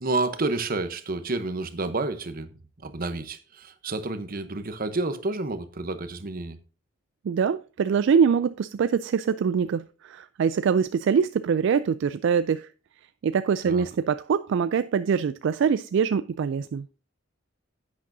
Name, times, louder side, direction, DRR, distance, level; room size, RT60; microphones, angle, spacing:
voice 1, 0.0-2.5 2.8-6.6 13.6-13.9, right 2 dB, 50° right, 0.9 m, -30 dB
voice 2, 7.2-12.7 13.2-16.9, right 6 dB, 65° right, 0.3 m, -24 dB
10.5 x 8.6 x 2.7 m
head